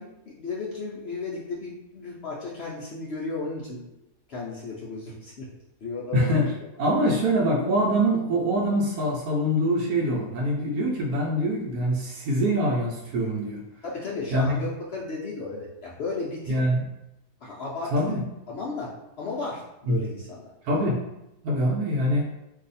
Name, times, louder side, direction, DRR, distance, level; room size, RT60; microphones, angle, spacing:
voice 1, 0.0-3.8 4.3-5.5 5.8-6.5 13.8-16.6 17.4-18.1 18.5-18.9 19.2-20.5, left 3 dB, 70° left, -5 dB, 0.6 m, -34 dB
voice 2, 6.1-6.4 6.8-13.6 14.3-14.7 16.5-16.8 17.9-18.2 19.9-20.0 20.6-21.0 21.4-22.2, equal, 75° right, -3 dB, 1.1 m, -24 dB
2.6 x 2.4 x 4.0 m, 0.88 s
omnidirectional pair, 1.7 m